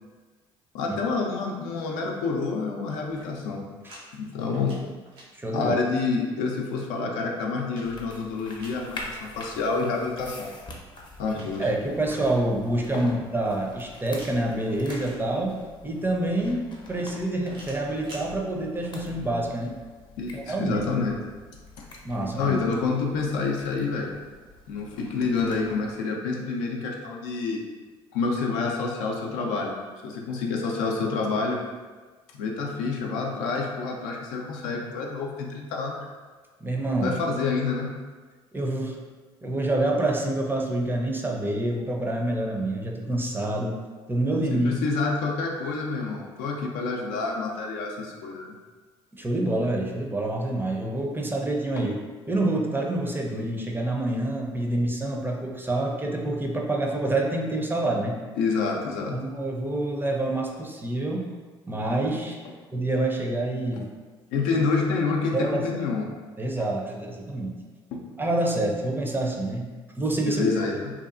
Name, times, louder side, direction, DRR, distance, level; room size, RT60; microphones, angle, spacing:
voice 1, 0.7-3.6 4.1-4.8 5.5-10.5 11.2-11.7 12.9-13.1 20.2-21.2 22.2-24.1 24.7-27.6 28.1-29.8 30.0-31.6 32.3-36.1 37.0-37.9 44.5-48.5 51.8-51.9 58.4-59.2 64.3-66.0 67.9-68.0 70.2-70.9, left 4 dB, 75° left, 0 dB, 0.4 m, -28 dB
sound 1, 3.0-4.0 4.3-5.3 7.0-8.8 10.8-12.6 14.1-15.7 17.4-18.3, right 1 dB, 80° right, 0.8 m, -48 dB
voice 2, 5.3-5.7 11.6-19.7 20.3-20.8 22.0-22.6 36.6-37.1 38.5-39.0 39.4-43.8 44.1-44.9 49.1-52.0 52.3-58.2 59.1-61.3 61.7-62.4 62.7-63.9 65.3-65.6 66.4-67.5 68.2-70.5, right 1 dB, 15° right, 0 dB, 0.5 m, -27 dB
sound 2, 7.8-26.0, left 2 dB, 35° left, 0.6 m, -46 dB
2.8 x 2.3 x 2.4 m, 1.4 s
hypercardioid pair, 55°, 14 cm